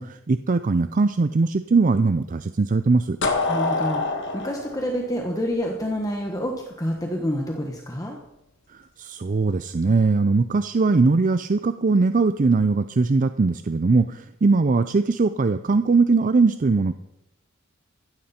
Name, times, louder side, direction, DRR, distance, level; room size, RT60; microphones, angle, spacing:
voice 1, 0.0-3.2 8.7-16.9, right 3 dB, 40° right, 11 dB, 0.5 m, -20 dB
sound 1, 3.2-6.1, left 3 dB, 60° left, 2.1 m, -26 dB
voice 2, 3.5-8.2, equal, 15° left, 1 dB, 1.4 m, -28 dB
15.5 x 13.0 x 4.4 m, 0.88 s
head